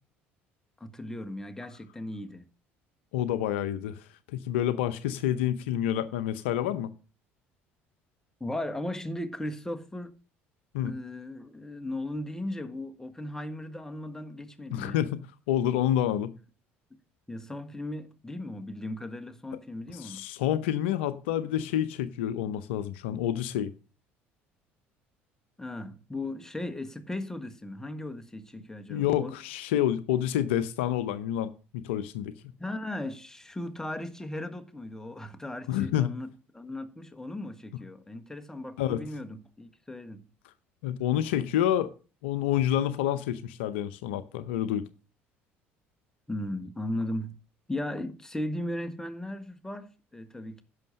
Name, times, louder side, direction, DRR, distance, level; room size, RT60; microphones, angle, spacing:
voice 1, 0.8-2.5 8.4-10.2 10.8-15.0 17.3-20.2 25.6-29.4 32.6-40.3 46.3-47.4 47.7-50.6, left 1 dB, 10° left, 1.4 m, -37 dB
voice 2, 3.1-4.0 4.3-6.9 10.7-10.9 14.7-16.3 19.9-23.7 28.9-32.3 35.7-36.1 38.8-39.0 40.8-41.9 42.2-44.8, left 11 dB, 70° left, 0.7 m, -28 dB
10.5 x 6.4 x 6.5 m
figure-of-eight pair, 60°, 6 cm